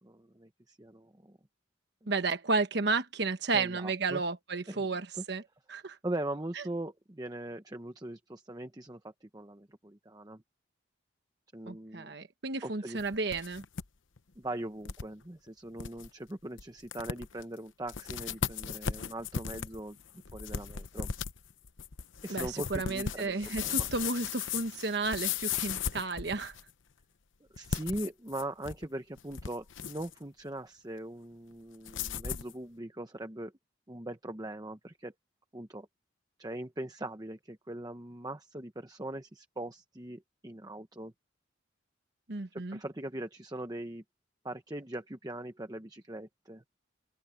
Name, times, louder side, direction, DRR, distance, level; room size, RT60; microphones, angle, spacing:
voice 1, 0.0-1.4 2.0-2.1 3.5-4.2 4.7-4.9 5.1-5.2 6.0-10.4 11.5-12.1 12.6-13.0 14.4-20.0 20.3-21.1 22.2-23.9 27.5-33.5 33.9-35.1 35.5-35.9 36.4-41.1 42.5-44.0 44.4-46.6, right 1 dB, 20° right, 1.0 m, -41 dB
voice 2, 2.1-5.4 5.7-6.0 6.6-6.7 11.7-13.6 22.3-26.5 42.3-42.8, right 3 dB, 60° right, 1.2 m, -32 dB
sound 1, 13.0-13.9 14.2-14.3 14.9-15.1 15.5-15.6 15.8-16.1 16.6-16.7 16.9-17.4 17.9-26.7 27.6-28.9 29.2-30.1 31.9-32.5, left 7 dB, 85° left, 0.9 m, -36 dB
head